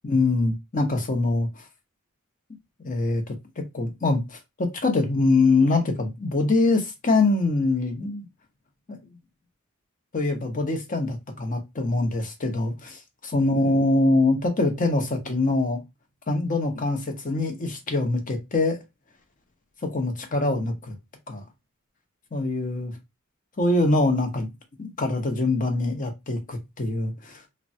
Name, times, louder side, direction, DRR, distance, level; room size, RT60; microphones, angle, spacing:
voice 1, 0.0-1.6 2.8-8.3 8.9-9.0 10.1-15.8 16.3-18.8 19.8-20.9 21.3-21.4 22.3-22.9 23.6-24.5 24.8-27.4, left 2 dB, 40° left, 0.7 m, -24 dB
3.2 x 2.1 x 2.6 m
head